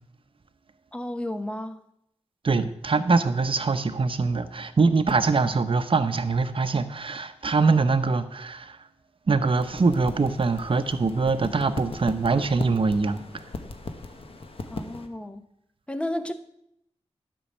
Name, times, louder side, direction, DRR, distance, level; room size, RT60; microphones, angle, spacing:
voice 1, 0.9-1.8 14.7-15.4 15.9-16.3, left 1 dB, 10° left, 9 dB, 0.9 m, -32 dB
voice 2, 2.4-8.8 9.3-13.2, right 4 dB, 50° right, 9 dB, 0.9 m, -23 dB
sound 1, 9.5-15.1, left 3 dB, 55° left, 1.1 m, -38 dB
12.0 x 5.4 x 7.3 m, 0.76 s
wide cardioid pair, 100°, 11 cm